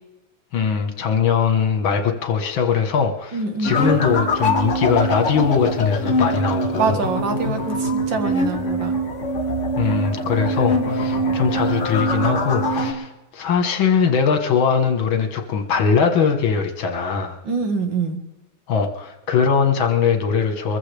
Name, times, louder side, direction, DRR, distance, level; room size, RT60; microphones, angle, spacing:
voice 1, 0.5-7.0 9.8-17.4 18.7-20.8, left 6 dB, 70° left, 6 dB, 2.1 m, -21 dB
voice 2, 3.3-3.8 6.8-9.0 17.5-18.2, right 4 dB, 65° right, 6 dB, 2.1 m, -24 dB
sound 1, 3.6-12.9, equal, 40° left, 1.6 m, -23 dB
23.5 x 14.5 x 3.4 m, 1.0 s
omnidirectional pair, 2.3 m